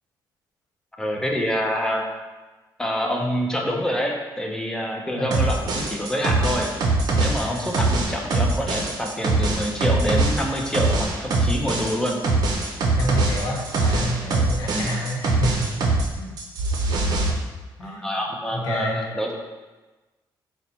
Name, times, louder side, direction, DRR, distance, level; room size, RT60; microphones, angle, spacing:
voice 1, 1.0-2.0 2.8-6.7 7.2-12.2 14.7-14.9 17.8-19.3, equal, 10° left, 1 dB, 0.5 m, -26 dB
sound 1, 5.3-16.1 16.4-17.3, right 2 dB, 55° right, 0.6 m, -22 dB
voice 2, 7.3-7.8 13.0-16.3 17.8-18.1 18.5-19.0, equal, 65° left, -2 dB, 0.9 m, -29 dB
3.9 x 2.2 x 4.2 m, 1.2 s
cardioid pair, 140°, 8 cm